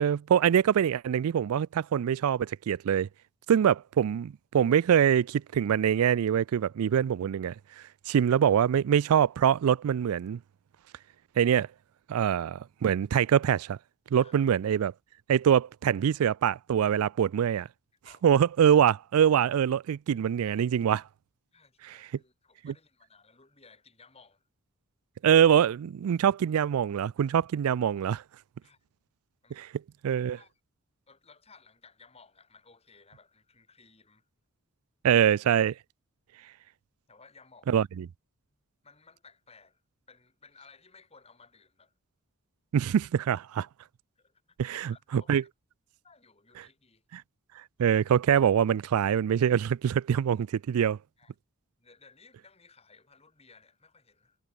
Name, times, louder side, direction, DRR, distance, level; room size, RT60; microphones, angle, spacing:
voice 1, 0.0-3.1 3.5-7.5 8.1-10.4 11.4-11.7 12.1-13.8 14.1-14.9 15.3-17.7 18.2-21.0 25.2-28.2 29.5-29.7 30.0-30.4 35.0-35.7 37.7-38.0 42.7-43.7 44.6-45.4 47.1-47.2 47.8-51.0, right 8 dB, 80° right, 0.3 m, -24 dB
voice 2, 21.5-24.5 28.6-28.8 29.4-29.6 30.2-30.5 31.1-34.3 37.1-37.9 38.8-39.8 40.1-41.9 42.8-42.9 44.2-45.4 46.0-47.0 51.2-51.3 51.8-54.4, left 4 dB, 30° left, 6.7 m, -58 dB
head